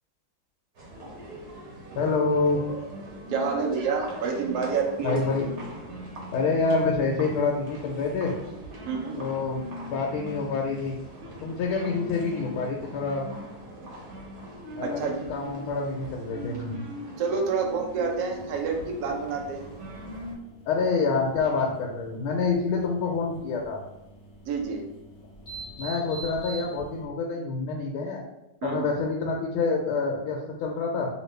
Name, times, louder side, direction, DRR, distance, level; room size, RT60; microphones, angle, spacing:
sound 1, 0.8-20.3, equal, 60° right, 1.2 m, -41 dB
voice 1, 2.0-2.6 5.0-5.5 6.3-8.3 9.2-11.0 11.4-13.3 14.8-16.8 20.7-23.8 25.8-28.2 28.6-31.1, left 4 dB, 85° left, -1 dB, 1.4 m, -27 dB
voice 2, 3.3-5.2 8.9-9.2 14.8-15.1 17.2-19.7 24.5-24.8 28.6-28.8, right 5 dB, 75° right, 1 dB, 0.9 m, -28 dB
sound 2, 18.3-27.0, right 2 dB, 50° left, 0.4 m, -46 dB
3.0 x 2.8 x 3.2 m, 0.91 s
omnidirectional pair, 2.3 m